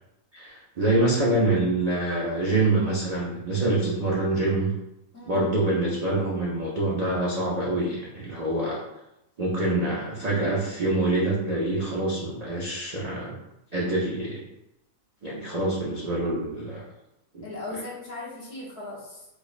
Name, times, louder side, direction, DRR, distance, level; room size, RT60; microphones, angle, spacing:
voice 1, 0.3-4.7 5.3-8.8 9.4-13.4 13.7-14.4 15.2-16.9 17.3-17.5, right 2 dB, 65° right, -5 dB, 0.4 m, -25 dB
voice 2, 5.1-5.5 17.4-19.3, left 2 dB, 50° left, -5 dB, 1.1 m, -38 dB
4.6 x 2.2 x 2.4 m, 0.89 s
omnidirectional pair, 1.5 m